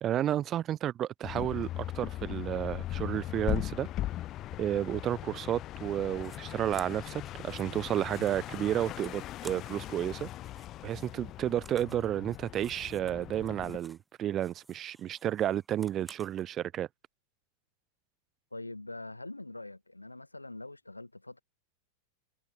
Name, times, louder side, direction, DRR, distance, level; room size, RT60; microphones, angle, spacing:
voice 1, 0.0-3.9 4.6-10.3 10.8-16.9, right 11 dB, 30° right, 0.5 m, -32 dB
sound 1, 1.2-13.8, left 14 dB, 35° left, 0.3 m, -39 dB
sound 2, 6.2-6.4 6.7-10.0 10.2-14.1 14.4-16.5, right 2 dB, 5° right, 2.1 m, -55 dB
voice 2, 18.5-21.4, left 2 dB, 85° left, 6.5 m, -43 dB
figure-of-eight pair, 90°, 0 cm